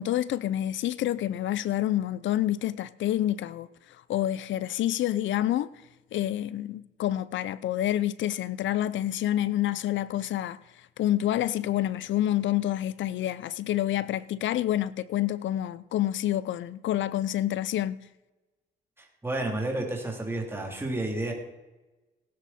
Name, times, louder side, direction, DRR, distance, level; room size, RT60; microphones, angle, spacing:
voice 1, 0.0-5.7 6.1-10.6 11.0-18.0, left 13 dB, 70° left, 0.6 m, -28 dB
voice 2, 19.0-21.3, right 2 dB, 10° right, 3.3 m, -31 dB
18.0 x 9.5 x 4.3 m
cardioid pair, 90°, 20 cm